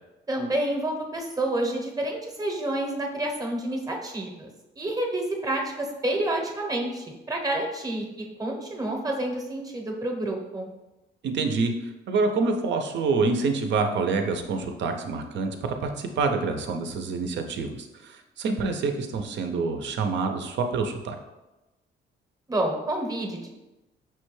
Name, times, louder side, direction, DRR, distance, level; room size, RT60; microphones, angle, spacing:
voice 1, 0.3-4.5 4.8-10.7 22.5-23.5, right 1 dB, 20° right, 1 dB, 0.8 m, -29 dB
voice 2, 11.2-11.7 12.1-21.2, right 4 dB, 65° right, 5 dB, 0.5 m, -27 dB
5.8 x 2.2 x 3.1 m, 1.0 s
cardioid pair, 90°, 20 cm